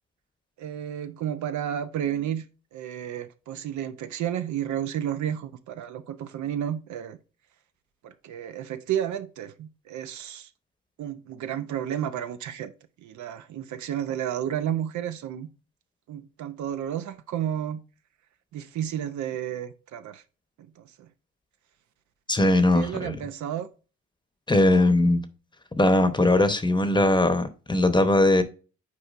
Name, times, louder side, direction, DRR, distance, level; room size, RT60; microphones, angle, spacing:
voice 1, 0.6-2.4 2.7-7.2 8.0-10.5 11.0-12.7 13.0-15.5 16.1-17.8 18.5-20.2 21.0-21.1 22.7-23.7, right 10 dB, 70° right, 0.7 m, -31 dB
voice 2, 22.3-23.2 24.5-25.2 25.8-28.4, left 2 dB, 15° left, 0.9 m, -20 dB
8.4 x 4.6 x 2.5 m
cardioid pair, 90°, 30 cm